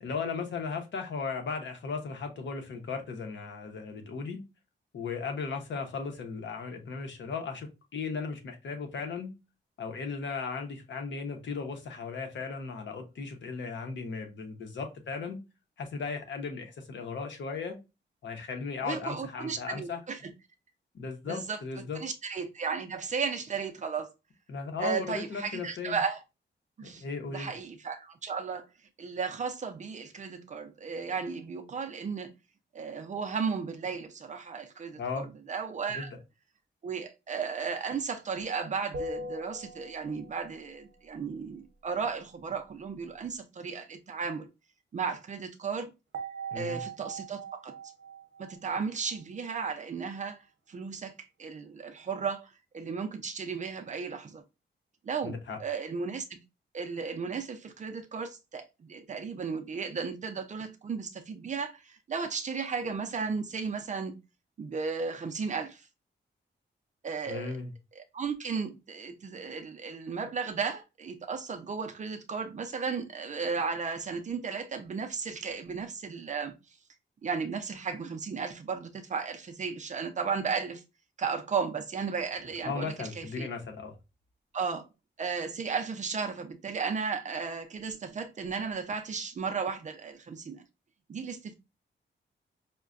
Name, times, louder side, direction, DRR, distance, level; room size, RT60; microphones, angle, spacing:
voice 1, 0.0-4.4 4.9-9.3 9.8-15.4 15.8-17.8 18.2-20.0 20.9-22.0 24.5-26.0 26.8-27.5 34.9-35.3 35.9-36.1 46.5-46.8 55.2-55.6 67.3-67.7 82.6-84.0, left 5 dB, 70° left, 0.8 m, -36 dB
voice 2, 18.8-20.3 21.3-21.6 22.0-24.1 24.8-26.2 26.8-28.7 29.0-32.3 32.7-36.1 36.8-44.5 44.9-45.9 46.5-47.7 48.4-50.4 50.7-54.4 55.0-56.2 56.7-64.1 64.6-65.9 67.0-67.6 68.0-76.5 77.2-80.8 81.2-83.5 84.5-84.9 85.2-90.6 91.1-91.5, right 5 dB, 40° right, 0.5 m, -35 dB
sound 1, 38.9-40.5 46.1-49.5, right 2 dB, 85° right, 0.8 m, -41 dB
5.4 x 2.2 x 2.4 m
wide cardioid pair, 165°, 19 cm